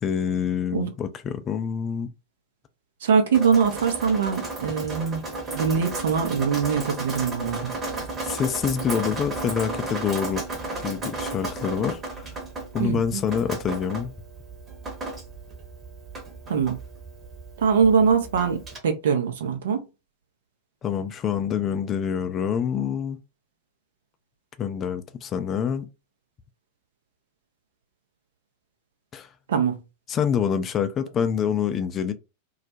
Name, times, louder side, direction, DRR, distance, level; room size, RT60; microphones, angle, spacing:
voice 1, 0.0-2.1 8.2-10.4 10.8-12.3 12.7-14.1 20.8-23.2 24.6-25.9 29.1-29.3 30.1-32.1, left 7 dB, 30° left, 0.4 m, -26 dB
voice 2, 3.0-5.2 5.6-7.7 12.8-13.2 16.5-16.8 17.6-19.8 29.5-29.8, right 6 dB, 65° right, 0.6 m, -22 dB
Drip, 3.3-18.8, right 2 dB, 25° right, 0.9 m, -34 dB
2.3 x 2.1 x 2.7 m
figure-of-eight pair, 90°, 0 cm